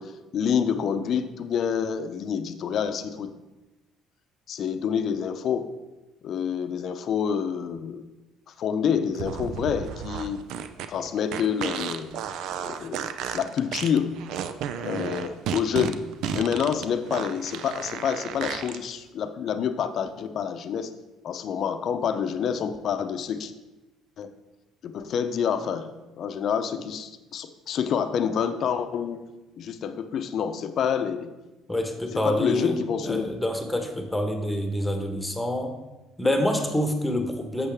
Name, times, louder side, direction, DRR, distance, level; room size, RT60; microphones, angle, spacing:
voice 1, 0.0-3.3 4.5-5.7 6.2-8.1 8.5-10.4 10.9-12.2 12.6-14.1 14.8-16.0 16.3-20.9 21.2-23.5 24.2-24.3 24.8-29.3 29.6-31.3 32.1-33.3, left 7 dB, 55° left, 9 dB, 0.6 m, -28 dB
sound 1, 9.1-18.8, right 8 dB, 70° right, 0.4 m, -33 dB
voice 2, 31.7-32.7 33.0-35.7 36.2-37.7, left 1 dB, 10° left, 5 dB, 1.2 m, -26 dB
8.2 x 6.8 x 3.5 m, 1.1 s
hypercardioid pair, 60°, 0 cm